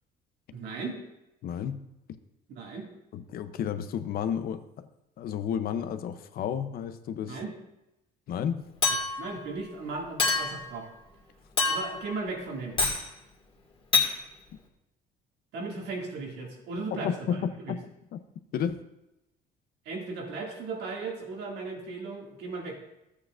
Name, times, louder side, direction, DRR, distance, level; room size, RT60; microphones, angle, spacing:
voice 1, 0.5-1.0 2.5-2.9 7.3-7.5 9.2-10.9 11.7-12.8 15.5-17.8 19.9-22.8, right 3 dB, 75° right, 0 dB, 2.2 m, -36 dB
voice 2, 1.4-1.8 3.1-4.9 5.2-7.4 8.3-8.6 16.9-17.8 18.1-18.2 18.5-18.8, left 8 dB, 65° left, 11 dB, 0.7 m, -32 dB
Chink clink, 8.8-9.3 10.2-10.7 11.6-12.1 12.8-13.0 13.9-14.1, left 4 dB, 30° left, 2.0 m, -26 dB
13.5 x 8.4 x 2.5 m, 0.91 s
cardioid pair, 110°, 17 cm